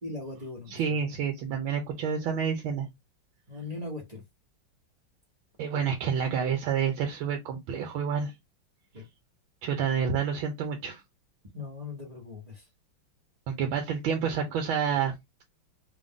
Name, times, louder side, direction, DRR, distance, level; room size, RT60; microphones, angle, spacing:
voice 1, 0.0-1.0 1.8-2.8 3.5-4.2 8.9-9.1 11.5-12.7, left 2 dB, 30° right, 0.9 m, -40 dB
voice 2, 0.7-2.9 5.6-8.3 9.6-11.0 13.5-15.1, right 7 dB, 85° right, 1.5 m, -29 dB
3.4 x 2.5 x 3.6 m
omnidirectional pair, 2.2 m